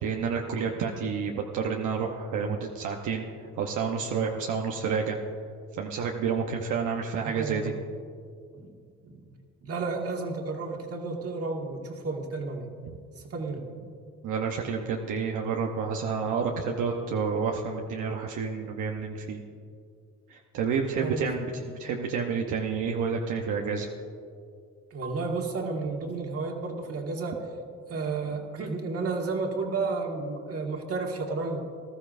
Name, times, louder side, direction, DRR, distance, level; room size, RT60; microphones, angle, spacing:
voice 1, 0.0-3.3 3.6-5.2 5.8-7.7 12.9-13.0 14.2-19.4 20.3-23.9, right 5 dB, 80° right, 1 dB, 0.9 m, -29 dB
voice 2, 7.3-7.8 8.5-8.7 9.0-9.3 9.6-12.7 13.2-13.9 21.0-21.2 24.9-27.5 27.9-31.7, right 3 dB, 50° right, 1 dB, 1.8 m, -32 dB
19.5 x 13.0 x 2.6 m, 2.3 s
cardioid pair, 90°, 30 cm